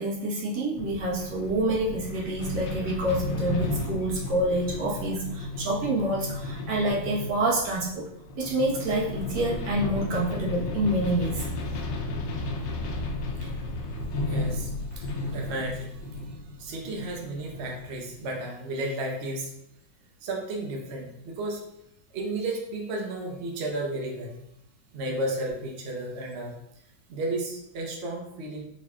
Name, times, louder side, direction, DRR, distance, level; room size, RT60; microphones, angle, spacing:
voice 1, 0.0-8.0 8.4-11.4, right 1 dB, 60° right, -5 dB, 1.6 m, -27 dB
sound 1, 0.8-18.3, left 2 dB, 70° left, 1.2 m, -33 dB
voice 2, 14.3-19.5 20.2-21.6 22.1-24.4 24.9-26.6 27.1-28.6, right 1 dB, 75° right, 0 dB, 0.6 m, -33 dB
4.8 x 4.1 x 2.3 m, 0.78 s
omnidirectional pair, 2.2 m